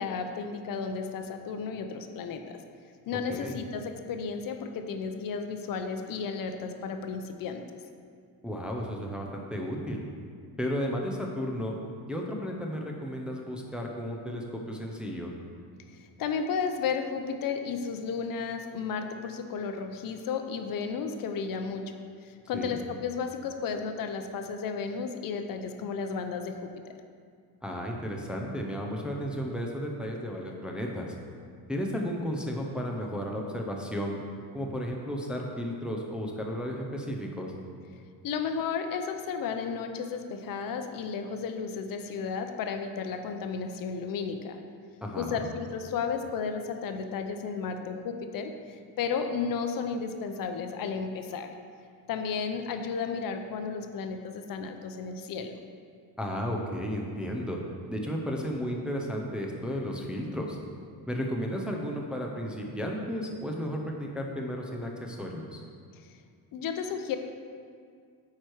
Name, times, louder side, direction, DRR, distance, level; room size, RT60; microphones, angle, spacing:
voice 1, 0.0-2.6 3.1-7.6 16.2-26.7 38.2-44.6 45.2-51.5 52.1-55.6 66.0-66.1 66.5-67.2, left 5 dB, 60° left, 6 dB, 0.6 m, -33 dB
voice 2, 8.4-10.0 10.6-11.8 12.1-15.3 22.5-22.8 27.6-31.1 31.7-34.2 34.5-37.5 45.0-45.4 56.2-57.6 57.9-60.6 61.1-65.6, equal, 5° right, -1 dB, 0.5 m, -33 dB
9.0 x 4.7 x 4.5 m, 2.2 s
cardioid pair, 170°, 38 cm